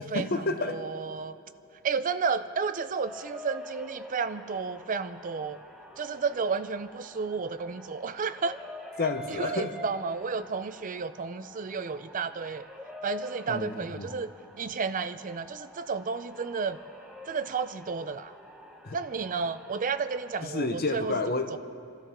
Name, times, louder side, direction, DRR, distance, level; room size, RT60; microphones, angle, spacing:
voice 1, 0.0-0.9 9.0-9.8 13.5-14.1 18.8-19.0 20.4-21.6, left 3 dB, 45° left, 0.9 m, -30 dB
voice 2, 0.7-1.3 1.8-5.6 6.0-8.6 9.4-12.6 13.0-14.3 14.6-16.8 17.3-18.3 18.9-21.1 21.5-21.6, right 5 dB, 40° right, 0.4 m, -32 dB
sound 1, 3.0-20.4, equal, 5° right, 1.1 m, -47 dB
29.5 x 13.0 x 3.6 m
head